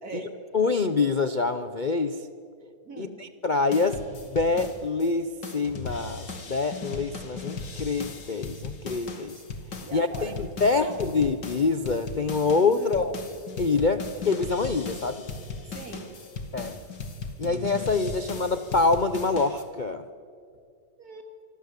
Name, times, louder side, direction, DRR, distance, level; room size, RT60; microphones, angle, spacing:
voice 1, 0.0-0.4 2.8-3.2 9.8-11.2 12.7-13.1 15.6-16.2 21.0-21.3, right 2 dB, 60° right, 4 dB, 3.3 m, -41 dB
voice 2, 0.5-2.2 3.0-9.4 9.9-13.2 13.6-15.3 16.5-16.8 17.4-20.0, left 4 dB, 40° left, 10 dB, 0.7 m, -26 dB
sound 1, 3.7-5.1 5.4-19.6, left 4 dB, 85° left, 2.9 m, -38 dB
26.0 x 24.5 x 8.3 m, 2.3 s
omnidirectional pair, 1.8 m